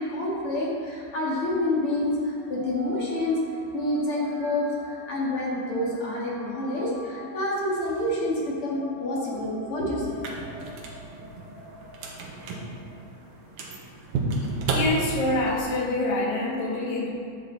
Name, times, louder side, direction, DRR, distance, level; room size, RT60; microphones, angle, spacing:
voice 1, 0.0-3.4 3.7-10.2, left 1 dB, 45° left, -5 dB, 3.0 m, -28 dB
sound 1, 1.3-13.0, right 1 dB, 20° right, 1.7 m, -46 dB
sound 2, 10.1-15.6, right 3 dB, 85° right, 2.9 m, -32 dB
voice 2, 14.7-17.1, left 2 dB, 65° left, -4 dB, 3.2 m, -26 dB
12.0 x 10.0 x 4.2 m, 2.3 s
omnidirectional pair, 3.6 m